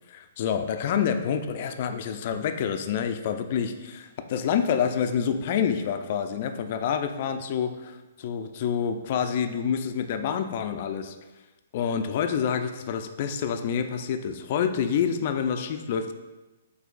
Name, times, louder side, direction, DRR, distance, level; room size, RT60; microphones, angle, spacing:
voice 1, 0.1-11.2 11.7-16.1, left 7 dB, 50° left, 8 dB, 0.3 m, -27 dB
6.4 x 2.7 x 2.5 m, 1.1 s
hypercardioid pair, 135°, 0 cm